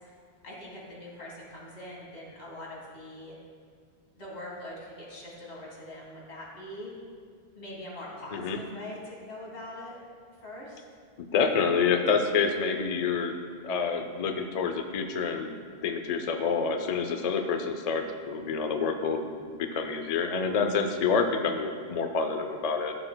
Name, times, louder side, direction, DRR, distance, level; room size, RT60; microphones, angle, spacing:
voice 1, 0.4-3.4 4.2-6.9 7.5-10.0 10.4-10.8, left 1 dB, 85° left, -4 dB, 2.2 m, -42 dB
voice 2, 11.2-13.4 13.6-15.6 15.8-19.3 19.6-22.9, left 5 dB, 50° left, 6 dB, 0.5 m, -28 dB
14.0 x 6.6 x 2.2 m, 2.1 s
omnidirectional pair, 1.1 m